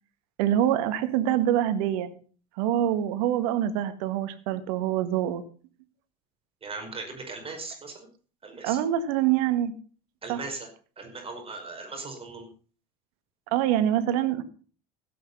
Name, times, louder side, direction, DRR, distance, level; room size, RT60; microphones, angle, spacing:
voice 1, 0.4-2.1 2.6-5.4 8.6-9.7 10.3-10.4 13.5-14.4, right 11 dB, 75° right, 12 dB, 1.8 m, -25 dB
voice 2, 6.6-8.1 8.4-8.8 10.2-10.7 11.0-12.5, right 3 dB, 30° right, 3 dB, 5.3 m, -38 dB
16.0 x 8.7 x 5.6 m, 0.40 s
hypercardioid pair, 75°, 20 cm